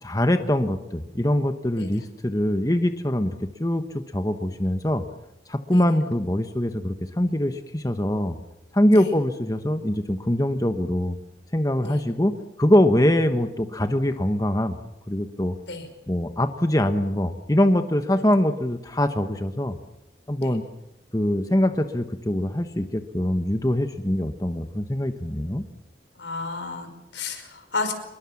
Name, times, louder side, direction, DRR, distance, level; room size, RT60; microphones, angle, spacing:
voice 1, 0.0-3.8 4.1-5.0 5.5-8.4 8.7-11.2 11.5-14.8 15.1-15.6 16.1-19.7 20.3-20.6 21.1-25.6, left 1 dB, 20° left, 7 dB, 1.1 m, -23 dB
voice 2, 26.2-27.9, left 3 dB, 85° left, 7 dB, 5.3 m, -32 dB
26.5 x 22.0 x 7.2 m, 0.93 s
head